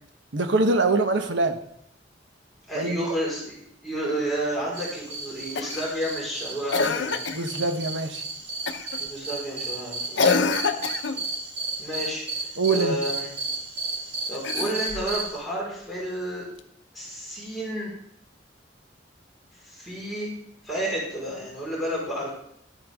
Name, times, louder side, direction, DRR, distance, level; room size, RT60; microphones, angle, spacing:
voice 1, 0.3-1.6 2.7-3.0 6.9-7.0 7.3-8.2 12.6-13.0, right 3 dB, 85° right, 7 dB, 1.1 m, -24 dB
voice 2, 2.7-7.2 9.0-10.2 11.8-12.2 12.7-13.3 14.3-16.4 16.9-17.9 19.6-20.3 20.6-22.3, right 1 dB, ahead, -7 dB, 4.7 m, -31 dB
sound 1, 4.7-15.4, right 3 dB, 65° right, 3.4 m, -34 dB
Cough, 5.6-5.9 6.7-7.5 8.7-9.0 10.2-11.2 14.3-15.1 16.6-16.7, left 4 dB, 80° left, 0.8 m, -25 dB
12.5 x 8.9 x 3.6 m, 0.73 s
head